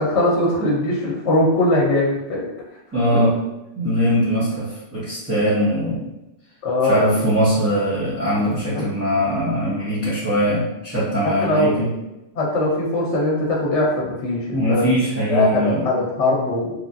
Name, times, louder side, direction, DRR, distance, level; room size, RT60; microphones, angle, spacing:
voice 1, 0.0-2.5 6.6-7.0 8.8-8.9 11.2-11.8 12.4-14.9 15.3-16.7, left 1 dB, 70° left, -3 dB, 0.9 m, -20 dB
voice 2, 2.9-3.3 3.8-6.1 6.9-11.9 14.5-15.8, equal, 15° right, -12 dB, 0.7 m, -21 dB
3.2 x 2.2 x 2.5 m, 0.93 s
omnidirectional pair, 1.3 m